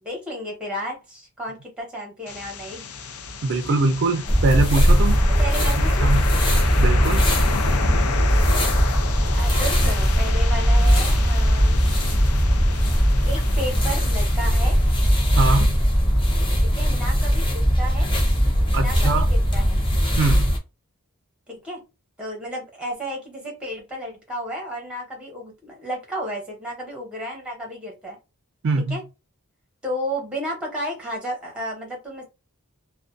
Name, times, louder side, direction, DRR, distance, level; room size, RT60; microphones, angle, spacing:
voice 1, 0.0-2.9 5.4-6.1 8.4-8.7 9.3-11.8 13.2-14.8 16.6-18.1 18.8-19.9 21.5-21.8 22.2-28.2 28.9-29.0 29.8-32.2, equal, 5° right, 1.0 m, -32 dB
sound 1, 2.3-16.1, left 5 dB, 75° left, 0.5 m, -32 dB
voice 2, 3.4-5.2 6.0-6.3 6.8-7.2 15.3-15.8 18.7-19.3 20.2-20.5 28.6-29.0, right 3 dB, 55° right, 0.4 m, -22 dB
sound 2, 4.3-20.6, equal, 20° left, 0.6 m, -19 dB
2.5 x 2.2 x 2.4 m
head